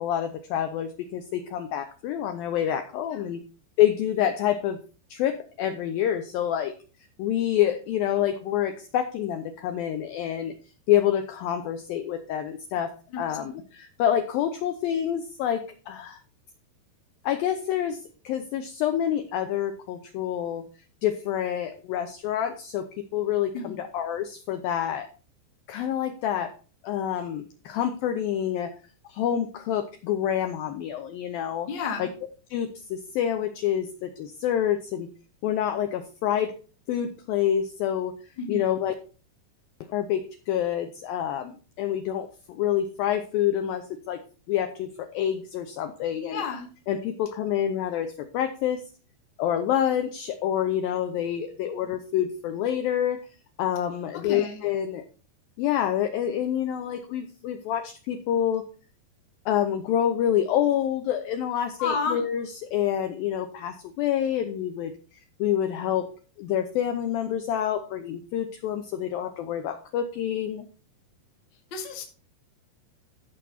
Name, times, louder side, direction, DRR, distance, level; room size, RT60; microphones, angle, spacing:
voice 1, 0.0-3.4 3.8-4.8 5.1-6.7 7.2-10.5 10.9-12.9 13.2-16.2 17.2-20.6 21.0-25.1 25.7-26.5 26.8-28.7 29.1-31.7 32.0-32.1 32.5-35.1 35.4-36.5 36.9-38.1 38.5-38.9 39.9-44.2 44.5-46.4 46.9-48.8 49.4-53.2 53.6-55.0 55.6-58.7 59.5-66.1 66.4-70.7, left 10 dB, 85° left, 7 dB, 2.1 m, -27 dB
voice 2, 31.7-32.1 38.4-38.6 46.3-46.7 54.2-54.6 61.8-62.2 71.7-72.0, left 5 dB, 45° left, 2 dB, 1.5 m, -31 dB
14.5 x 5.3 x 4.3 m, 0.37 s
omnidirectional pair, 5.1 m